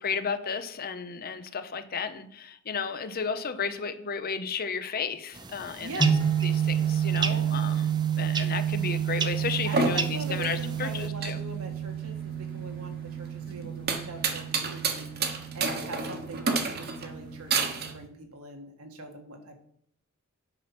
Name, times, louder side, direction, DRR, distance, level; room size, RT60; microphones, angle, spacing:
voice 1, 0.0-11.4 13.5-13.6, left 5 dB, 40° left, 10 dB, 0.7 m, -33 dB
sound 1, 5.3-11.1, right 5 dB, 20° right, 0.6 m, -36 dB
voice 2, 5.8-6.1 7.2-7.5 9.6-19.5, right 2 dB, 75° right, 4 dB, 1.7 m, -42 dB
sound 2, 6.0-18.1, right 8 dB, 20° left, 1.2 m, -30 dB
sound 3, 9.5-17.9, right 4 dB, 45° right, 1.2 m, -31 dB
9.1 x 5.8 x 6.0 m, 0.67 s
head